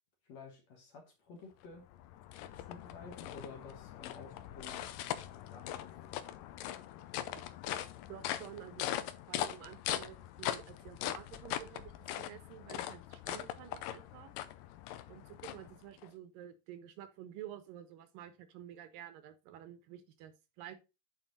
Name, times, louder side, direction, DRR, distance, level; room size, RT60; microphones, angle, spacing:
voice 1, 0.2-1.9 2.6-4.9 5.5-5.9, left 3 dB, 60° left, 2.1 m, -52 dB
sound 1, 1.6-16.1, left 12 dB, 80° left, 2.1 m, -41 dB
voice 2, 8.1-8.9 9.3-14.3 15.1-20.8, right 11 dB, 75° right, 2.3 m, -50 dB
9.1 x 4.4 x 3.8 m
omnidirectional pair, 4.2 m